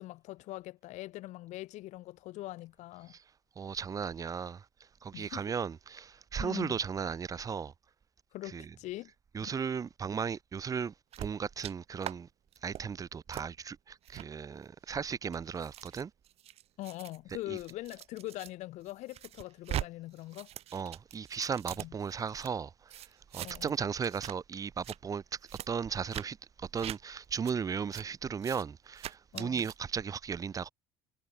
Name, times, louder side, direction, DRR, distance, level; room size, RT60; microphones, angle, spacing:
voice 1, 0.0-3.1 5.1-5.4 6.4-6.8 8.3-9.1 9.4-9.6 16.8-20.5 21.8-21.9 23.4-23.7 29.3-29.7, left 17 dB, 65° left, 1.9 m, -42 dB
voice 2, 3.6-4.6 5.0-7.7 8.5-8.7 9.3-12.3 12.6-16.1 17.5-17.6 20.7-22.9 23.3-25.2 25.7-30.7, right 6 dB, 25° right, 0.6 m, -36 dB
sound 1, 11.1-11.7 12.0-12.1 12.5-12.8 13.3-13.5 14.0-14.3 14.9-18.5 18.9-19.9 20.1-22.5 22.9-23.8 24.0-24.3 24.7-25.0 25.5-25.7 26.1-26.3 26.8-27.0 27.4-27.5 27.9-28.1 28.4-28.6 29.0-29.7, right 12 dB, 50° right, 0.9 m, -42 dB
hypercardioid pair, 80°, 13 cm